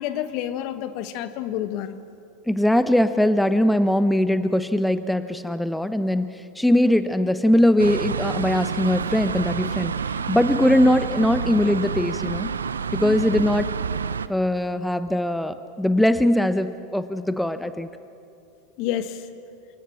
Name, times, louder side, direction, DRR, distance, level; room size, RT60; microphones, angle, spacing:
voice 1, 0.0-2.0 13.0-13.2 18.8-19.3, left 11 dB, 55° left, 11 dB, 1.4 m, -29 dB
voice 2, 2.5-12.5 12.9-13.7 14.3-17.9, left 1 dB, 5° left, 11 dB, 1.0 m, -21 dB
sound 1, 7.8-14.3, right 6 dB, 85° right, 0.7 m, -28 dB
27.0 x 19.5 x 7.3 m, 2.5 s
hypercardioid pair, 90°, 0 cm